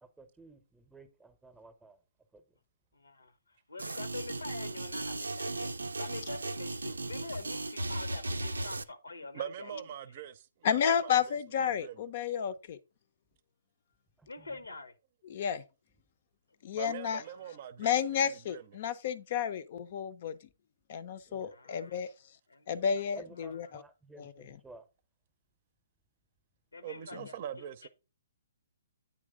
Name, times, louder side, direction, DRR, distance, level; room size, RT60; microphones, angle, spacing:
voice 1, 0.0-2.0 2.3-2.4 14.2-14.5 21.3-21.6 23.1-24.9, right 2 dB, 5° right, 0.8 m, -54 dB
voice 2, 2.9-9.8 10.1-10.2 14.3-14.9 17.2-17.6 21.5-22.0 22.5-22.7 23.0-23.1 23.4-23.6 26.7-27.9, left 3 dB, 85° left, 1.0 m, -46 dB
sound 1, 3.8-8.8, right 2 dB, 90° right, 0.5 m, -36 dB
voice 3, 9.3-11.3 11.8-12.0 16.7-18.6 26.8-27.9, right 9 dB, 45° right, 0.6 m, -43 dB
voice 4, 10.6-12.8 15.3-15.6 16.6-17.2 17.8-20.4 20.9-22.1 22.7-23.8 24.2-24.6 27.1-27.3, left 8 dB, 50° left, 0.6 m, -31 dB
8.7 x 3.2 x 4.9 m
hypercardioid pair, 135°, 0 cm